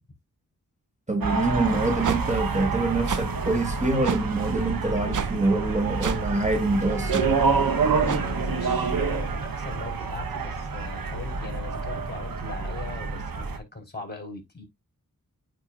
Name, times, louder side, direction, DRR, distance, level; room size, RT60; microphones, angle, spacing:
voice 1, 1.1-7.3, right 2 dB, 20° right, 1.4 m, -25 dB
sound 1, 1.2-13.6, right 4 dB, 80° right, 1.1 m, -27 dB
sound 2, 2.0-2.2 3.1-3.2 4.0-4.2 5.1-5.3 6.0-6.2 7.1-7.3 8.1-8.2, right 6 dB, 60° right, 0.7 m, -28 dB
voice 2, 7.9-14.6, left 3 dB, 30° left, 4.1 m, -39 dB
9.1 x 4.5 x 2.4 m
cardioid pair, 45°, 34 cm